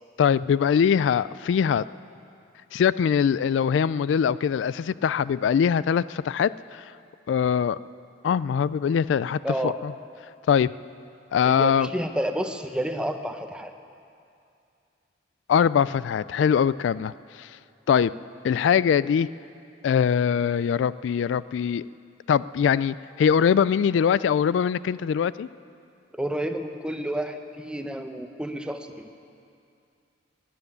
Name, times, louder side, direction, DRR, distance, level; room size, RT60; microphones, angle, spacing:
voice 1, 0.2-1.8 2.7-6.8 7.3-7.8 8.2-9.9 10.5-10.7 11.3-11.9 15.5-17.1 17.4-17.5 17.9-18.1 18.4-19.3 19.8-21.8 22.3-25.5, left 7 dB, 85° left, 18 dB, 0.3 m, -22 dB
voice 2, 9.4-9.8 11.4-13.7 26.1-29.1, right 1 dB, 5° right, 6 dB, 0.7 m, -30 dB
13.5 x 10.5 x 9.9 m, 2.5 s
head